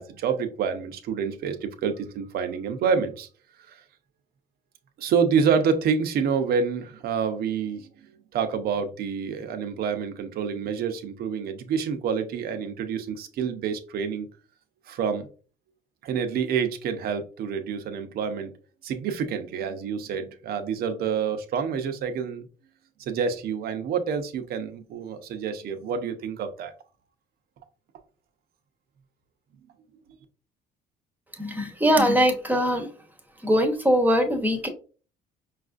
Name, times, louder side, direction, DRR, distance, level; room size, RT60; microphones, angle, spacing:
voice 1, 0.0-3.3 3.7-3.8 5.0-7.9 8.3-14.3 14.9-15.3 16.0-18.5 18.8-22.5 23.0-26.7, right 6 dB, 65° right, 0.7 m, -27 dB
voice 2, 31.4-32.9 33.4-34.7, equal, 10° right, 0.9 m, -22 dB
5.3 x 2.4 x 2.5 m
cardioid pair, 110°, 17 cm